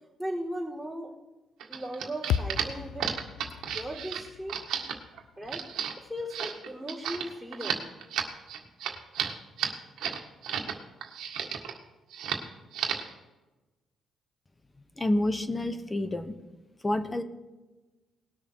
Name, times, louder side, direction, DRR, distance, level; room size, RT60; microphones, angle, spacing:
voice 1, 0.2-1.1 1.7-3.1 3.7-4.6 5.4-7.9, equal, ahead, -4 dB, 4.2 m, -37 dB
sound 1, 1.6-10.7 11.0-11.8 12.1-12.5 12.7-13.1, right 8 dB, 80° right, 1.7 m, -33 dB
sound 2, 2.3-6.6, left 9 dB, 90° left, 0.5 m, -36 dB
voice 2, 15.0-16.3 16.8-17.2, left 1 dB, 20° left, 11 dB, 1.1 m, -28 dB
19.5 x 6.6 x 4.7 m, 1.1 s
cardioid pair, 90°, 0 cm